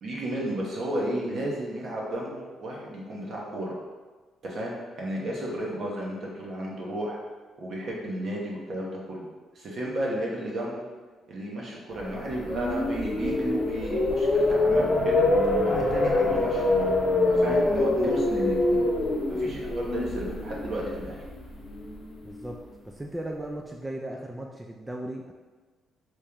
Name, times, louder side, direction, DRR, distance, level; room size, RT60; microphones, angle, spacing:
voice 1, 0.0-3.8 4.4-7.2 7.6-9.3 9.5-10.9 11.3-15.2 15.6-16.9 17.2-18.8 19.3-21.2, right 1 dB, 60° right, -3 dB, 1.0 m, -33 dB
sound 1, 12.1-22.3, left 2 dB, 40° left, 0.9 m, -25 dB
voice 2, 22.2-22.6 22.8-25.3, right 1 dB, 15° right, 0 dB, 0.3 m, -36 dB
3.1 x 2.8 x 3.5 m, 1.3 s
cardioid pair, 90°, 0 cm